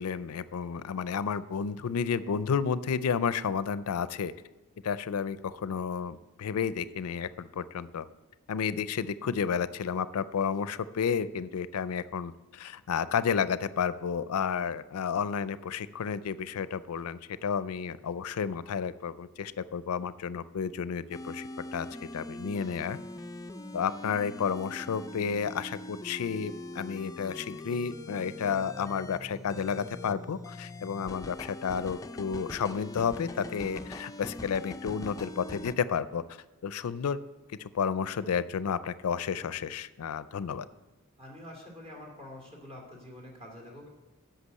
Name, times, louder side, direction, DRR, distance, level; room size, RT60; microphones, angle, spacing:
voice 1, 0.0-4.3 4.8-8.0 8.5-21.9 22.1-23.0 23.7-36.2 36.6-37.2 37.6-40.7, left 6 dB, 80° left, 15 dB, 0.4 m, -31 dB
sound 1, 21.1-35.7, left 2 dB, 15° left, 0.4 m, -42 dB
voice 2, 41.2-43.9, left 1 dB, 30° right, 0 dB, 2.5 m, -46 dB
8.2 x 5.9 x 8.1 m, 1.0 s
head